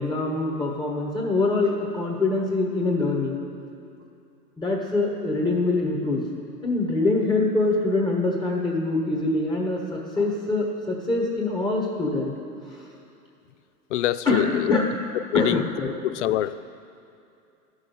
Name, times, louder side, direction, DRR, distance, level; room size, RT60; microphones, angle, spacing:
voice 1, 0.0-3.4 4.6-6.2 6.6-12.3 14.3-14.8 15.3-15.9, left 2 dB, 10° left, -1 dB, 1.3 m, -24 dB
voice 2, 13.9-14.8 15.1-15.6 16.0-16.6, left 13 dB, 50° left, 15 dB, 0.5 m, -24 dB
12.5 x 6.4 x 8.2 m, 2.6 s
hypercardioid pair, 130°, 48 cm